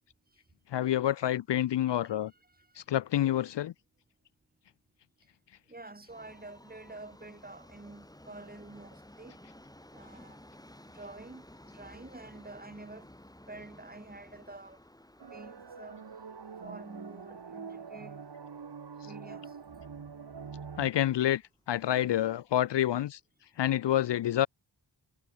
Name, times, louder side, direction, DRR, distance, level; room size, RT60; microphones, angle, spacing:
voice 1, 0.7-2.3 2.8-3.7 20.8-21.4 21.7-23.2 23.6-24.5, left 12 dB, 65° left, 0.5 m, -28 dB
voice 2, 1.8-2.1 2.6-2.7 5.7-9.4 9.9-10.4 10.9-13.1 13.5-14.8 15.3-16.0 16.6-18.2 19.0-19.5, right 2 dB, 20° right, 1.9 m, -48 dB
Subway metro underground, 6.1-20.2 20.5-20.6 21.4-21.5 21.8-21.9 22.5-22.6, left 1 dB, 10° left, 3.3 m, -55 dB
sound 1, 15.2-20.9, right 6 dB, 60° right, 2.8 m, -45 dB
wide cardioid pair, 110°, 46 cm